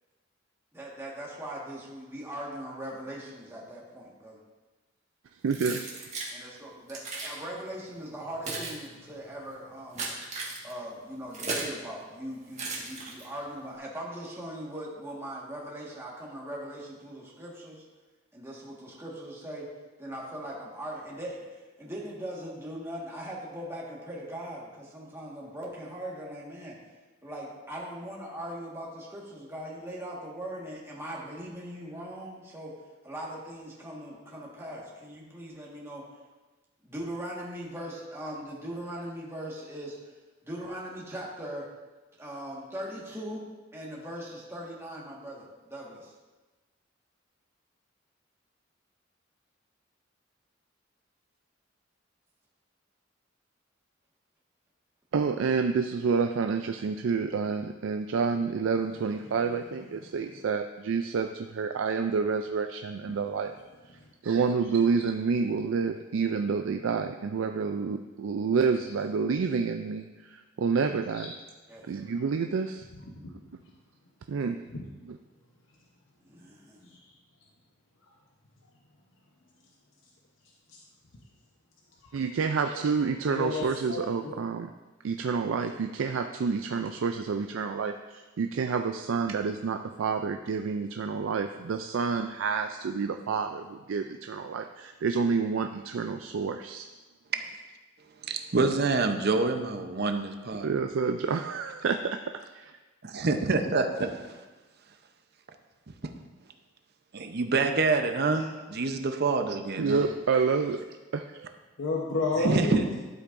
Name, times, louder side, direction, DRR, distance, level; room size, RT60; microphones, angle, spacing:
voice 1, 0.7-4.4 6.3-10.0 10.6-17.8 18.3-19.7 20.0-26.7 27.2-32.7 33.0-36.0 36.8-40.1 40.4-41.6 42.1-43.4 43.7-46.1 64.2-64.4 71.7-71.8 76.2-76.9, right 1 dB, 15° right, -5 dB, 1.6 m, -40 dB
voice 2, 5.4-6.0 55.1-63.5 64.2-71.3 71.9-72.9 74.3-74.6 75.1-75.2 82.1-84.7 85.0-96.9 100.6-102.2 102.5-102.6 109.8-110.9 111.1-111.5, right 5 dB, 85° right, 6 dB, 0.4 m, -29 dB
Keys jangling, 5.5-6.3 6.9-7.4 8.1-11.8 12.5-13.5, right 3 dB, 35° right, 1.7 m, -36 dB
voice 3, 72.9-73.3 74.7-74.9 76.8-77.0 83.3-84.4 108.3-108.4 111.8-112.8, left 3 dB, 80° left, -2 dB, 1.0 m, -31 dB
voice 4, 98.3-100.7 103.0-104.3 106.0-106.1 107.1-110.0 112.4-113.0, right 3 dB, 55° right, 6 dB, 0.7 m, -27 dB
12.0 x 8.1 x 2.6 m, 1.2 s
head